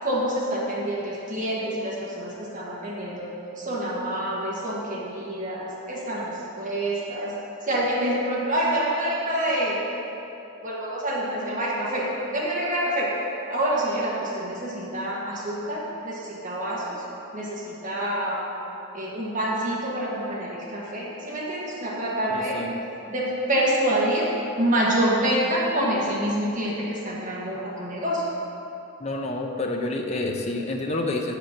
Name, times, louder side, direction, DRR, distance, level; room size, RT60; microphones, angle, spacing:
voice 1, 0.0-3.3 3.6-7.3 7.6-9.8 10.6-13.1 13.5-17.0 17.3-18.4 18.9-22.6 23.1-24.3 24.6-28.2, right 1 dB, 35° right, -5 dB, 1.2 m, -27 dB
voice 2, 22.3-22.8 29.0-31.4, left 2 dB, 30° left, 2 dB, 0.6 m, -28 dB
8.3 x 5.1 x 5.9 m, 2.9 s
head